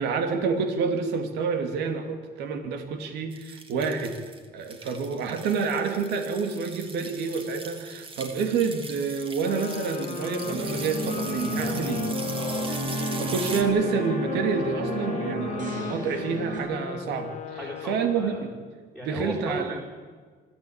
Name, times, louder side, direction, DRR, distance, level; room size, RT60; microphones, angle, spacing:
voice 1, 0.0-4.2 4.5-12.0 13.2-17.6 17.9-18.5 19.0-19.8, right 5 dB, 80° right, 7 dB, 2.6 m, -28 dB
sound 1, 3.3-13.6, right 3 dB, 30° right, 2.7 m, -40 dB
sound 2, 9.4-18.6, left 8 dB, 45° left, 1.6 m, -36 dB
sound 3, 10.2-16.6, right 2 dB, 50° right, 6.9 m, -32 dB
voice 2, 12.4-12.7 15.9-16.2 17.5-18.4 18.9-19.8, equal, 5° right, -2 dB, 4.5 m, -36 dB
26.0 x 14.0 x 8.9 m, 1.5 s
cardioid pair, 110°, 17 cm